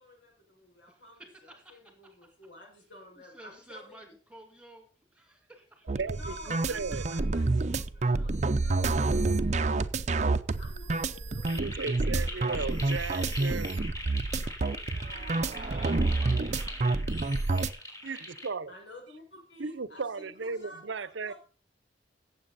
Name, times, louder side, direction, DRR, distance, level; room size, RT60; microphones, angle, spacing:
voice 1, 0.0-4.0 6.0-9.6 10.4-12.8 13.5-13.6 18.7-21.4, left 1 dB, 80° left, 5.8 m, -51 dB
voice 2, 0.9-2.2 3.2-6.0 15.4-16.4, right 1 dB, 5° right, 2.4 m, -53 dB
sound 1, 5.9-17.7, right 3 dB, 40° right, 0.6 m, -28 dB
voice 3, 5.9-7.1 11.5-13.8 18.0-18.7 19.6-21.3, right 4 dB, 85° right, 0.7 m, -36 dB
sound 2, 11.4-18.5, left 1 dB, 20° left, 3.4 m, -41 dB
16.0 x 7.5 x 4.1 m
head